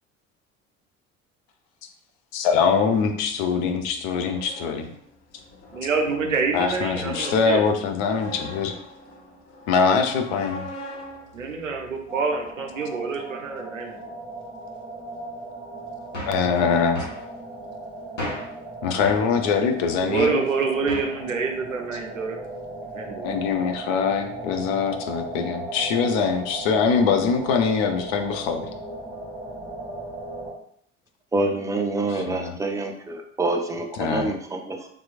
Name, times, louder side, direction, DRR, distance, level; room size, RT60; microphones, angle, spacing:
voice 1, 2.3-4.9 6.5-8.7 9.7-10.7 16.3-17.1 18.8-20.4 23.2-28.6 32.3-32.5 34.0-34.3, left 5 dB, 55° left, 6 dB, 0.6 m, -23 dB
sound 1, 3.2-12.5, left 1 dB, 35° left, 0.9 m, -42 dB
voice 2, 5.7-7.6 11.3-14.0 20.0-22.4 22.9-23.4, right 4 dB, 90° right, 4 dB, 0.5 m, -27 dB
sound 2, 12.1-30.5, right 2 dB, 10° left, 1.4 m, -37 dB
sound 3, 16.1-16.5 16.9-17.2 18.2-18.6 19.0-19.3 20.1-20.4 20.9-21.2, left 1 dB, 75° left, 1.1 m, -33 dB
voice 3, 31.3-34.9, right 2 dB, 10° right, 2 dB, 0.4 m, -26 dB
3.4 x 2.9 x 2.4 m, 0.67 s
figure-of-eight pair, 60°, 38 cm